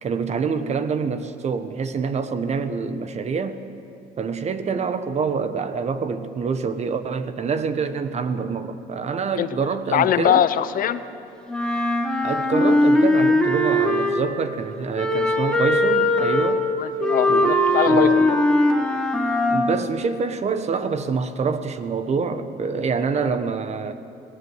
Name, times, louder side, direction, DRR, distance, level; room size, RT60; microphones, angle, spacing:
voice 1, 0.0-3.6 4.2-10.4 12.2-16.7 17.3-17.6 17.8-18.3 19.5-23.9, right 5 dB, 40° right, 11 dB, 1.2 m, -26 dB
voice 2, 9.9-11.0 16.8-18.3 23.3-23.4, left 10 dB, 55° left, 13 dB, 0.8 m, -22 dB
Wind instrument woodwind instrument, 11.5-14.4 14.9-19.8, left 1 dB, 5° left, 1.9 m, -20 dB
19.0 x 18.0 x 8.0 m, 2.6 s
cardioid pair, 110°, 17 cm